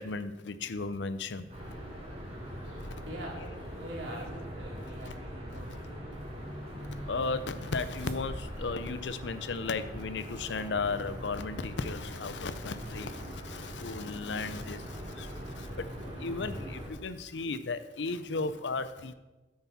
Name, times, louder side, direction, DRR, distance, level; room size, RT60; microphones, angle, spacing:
voice 1, 0.0-1.5 2.8-3.0 5.1-5.2 7.1-19.1, left 4 dB, 75° left, 12 dB, 0.6 m, -35 dB
sound 1, 1.5-16.9, equal, 35° right, 2.9 m, -42 dB
voice 2, 3.1-5.8, right 1 dB, 85° right, -2 dB, 2.7 m, -43 dB
sound 2, 3.4-9.2, equal, 55° right, 1.7 m, -51 dB
9.4 x 8.7 x 4.2 m, 1.1 s
head